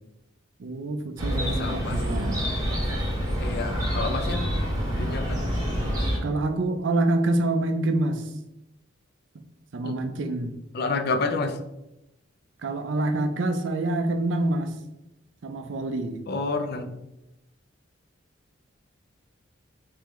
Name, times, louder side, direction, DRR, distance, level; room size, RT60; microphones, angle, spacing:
voice 1, 0.6-2.5 6.2-8.3 9.7-10.6 12.6-14.8 15.4-16.2, right 2 dB, 60° right, 7 dB, 0.4 m, -26 dB
Chirp tweet, 1.2-6.2, equal, 20° right, 1.0 m, -27 dB
voice 2, 1.4-2.0 3.4-4.5 4.9-5.4 9.8-10.0 10.7-11.6 16.3-16.9, left 3 dB, 50° left, 7 dB, 0.4 m, -29 dB
3.6 x 3.3 x 3.0 m, 0.89 s
head